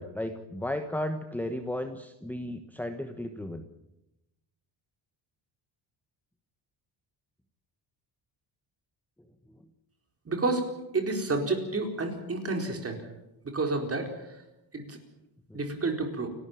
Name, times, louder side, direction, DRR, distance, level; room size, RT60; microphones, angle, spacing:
voice 1, 0.0-3.6 15.5-15.6, left 1 dB, 5° left, 6 dB, 1.2 m, -34 dB
voice 2, 10.3-10.6 10.9-13.0 13.4-14.4 14.7-15.0 15.5-16.3, right 3 dB, 30° right, 4 dB, 4.3 m, -30 dB
29.0 x 12.5 x 9.0 m, 0.91 s
cardioid pair, 150°, 47 cm